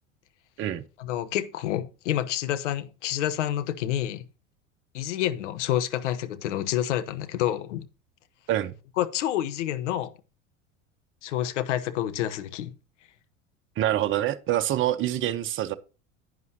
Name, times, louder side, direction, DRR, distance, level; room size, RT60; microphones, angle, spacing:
voice 1, 1.0-4.2 4.9-7.9 9.0-10.1 11.2-12.7, left 12 dB, 60° left, 1.1 m, -28 dB
voice 2, 13.8-15.8, right 12 dB, 30° right, 0.9 m, -26 dB
10.5 x 9.6 x 2.8 m
figure-of-eight pair, 75°, 40 cm